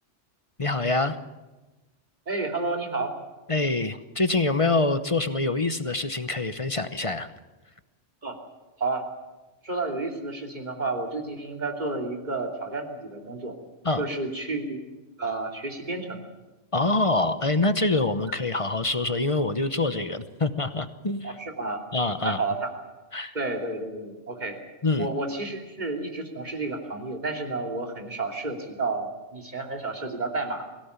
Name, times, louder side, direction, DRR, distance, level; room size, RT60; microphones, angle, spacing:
voice 1, 0.6-1.2 3.5-7.3 13.8-14.0 16.7-21.4 21.9-22.4 23.1-23.4 24.8-25.1, left 2 dB, 30° left, 10 dB, 1.0 m, -25 dB
voice 2, 2.3-3.2 8.2-8.4 8.8-9.1 9.6-13.6 14.0-14.8 15.2-16.2 21.2-21.8 22.2-22.7 23.3-24.6 25.0-30.7, right 3 dB, 40° right, 2 dB, 3.1 m, -31 dB
24.0 x 16.5 x 8.3 m, 1.1 s
omnidirectional pair, 1.2 m